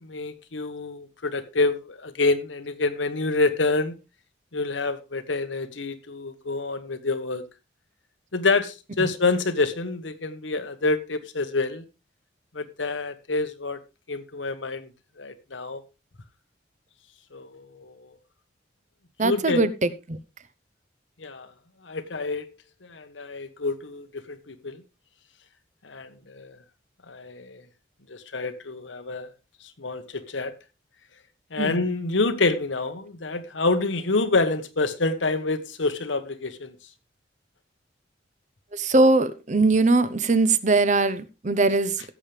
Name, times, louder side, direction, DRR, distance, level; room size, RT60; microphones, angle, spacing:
voice 1, 0.0-3.9 4.5-7.4 8.3-11.8 12.5-13.8 14.1-14.9 15.2-15.8 17.3-18.1 19.2-19.6 21.2-21.5 21.8-22.5 22.8-24.8 25.8-26.6 27.1-27.6 28.1-29.3 29.8-30.6 31.5-36.7, left 3 dB, 90° left, 1.2 m, -27 dB
voice 2, 19.2-20.2 31.6-31.8 38.7-42.0, right 3 dB, 40° right, 0.8 m, -21 dB
16.0 x 7.4 x 3.4 m
head